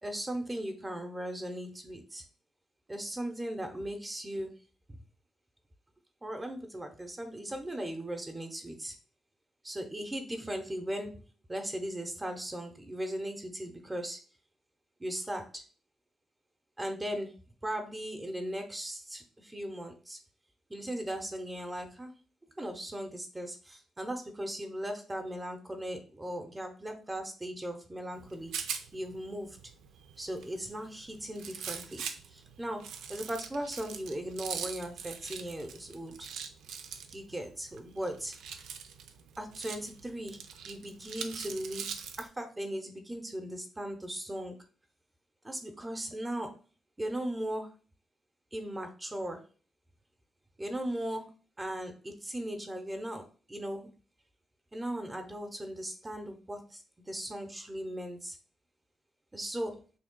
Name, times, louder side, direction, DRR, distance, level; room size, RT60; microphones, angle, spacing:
voice 1, 0.0-2.2 2.9-4.5 4.9-5.0 6.2-8.9 9.6-11.1 11.5-14.2 15.0-15.6 16.8-17.3 17.6-20.2 20.7-22.1 22.6-29.6 30.2-32.8 33.1-36.3 37.1-38.3 39.4-40.4 40.6-44.5 45.4-46.5 47.0-47.7 48.5-49.4 50.6-51.3 51.6-53.9 54.7-58.4 59.3-59.7, right 1 dB, 20° right, 4 dB, 0.7 m, -38 dB
Rattle, 28.1-42.3, right 7 dB, 80° right, 0.4 m, -43 dB
6.2 x 2.3 x 2.2 m, 0.38 s
supercardioid pair, 60°, 0 cm